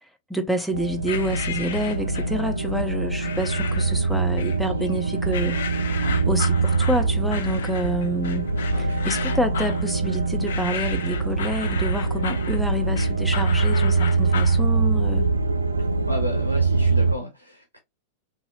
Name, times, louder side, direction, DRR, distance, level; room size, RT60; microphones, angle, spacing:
voice 1, 0.3-5.6 6.3-8.5 9.0-15.3, equal, ahead, 0.6 m, -28 dB
sound 1, 0.7-17.1, right 3 dB, 80° right, 0.3 m, -23 dB
sound 2, 1.1-2.4 3.2-4.0 4.4-5.0 5.3-14.6, left 8 dB, 60° left, 0.3 m, -34 dB
voice 2, 5.9-6.2 8.7-9.1 16.1-17.8, equal, 90° left, 0.7 m, -33 dB
2.7 x 2.7 x 2.6 m
figure-of-eight pair, 90°, 0 cm